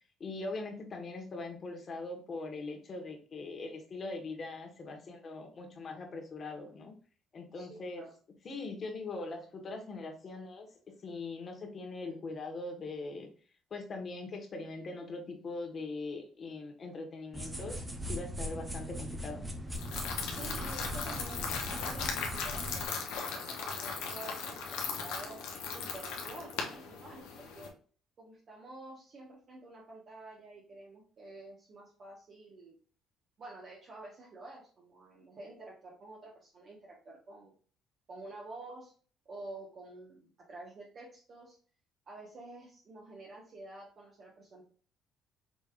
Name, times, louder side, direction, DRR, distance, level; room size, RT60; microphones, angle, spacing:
voice 1, 0.2-6.9 7.3-8.0 8.4-10.7 11.0-13.3 13.7-19.4, left 3 dB, 45° left, 3 dB, 1.3 m, -41 dB
voice 2, 7.5-8.1 20.3-25.4 25.7-27.7 28.2-32.8 33.4-37.5 38.1-38.9 39.2-41.6 42.1-44.6, right 2 dB, 50° right, -4 dB, 1.3 m, -49 dB
sound 1, 17.3-22.8, equal, 15° right, 0.9 m, -40 dB
sound 2, 19.7-27.7, left 5 dB, 80° left, 0.9 m, -38 dB
5.2 x 3.4 x 2.5 m, 0.40 s
supercardioid pair, 75°, 0 cm